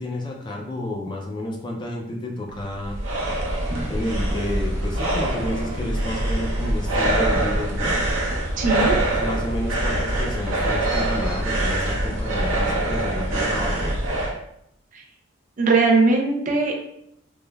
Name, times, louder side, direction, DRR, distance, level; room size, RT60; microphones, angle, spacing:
voice 1, 0.0-3.0 3.9-8.0 9.0-13.9, left 1 dB, 25° left, 0 dB, 0.3 m, -30 dB
sound 1, 2.5-14.3, right 1 dB, 85° right, 0.6 m, -24 dB
voice 2, 8.6-8.9 14.9-15.0 15.6-16.8, right 3 dB, 40° right, 1 dB, 0.4 m, -19 dB
3.2 x 2.0 x 2.2 m, 0.75 s
head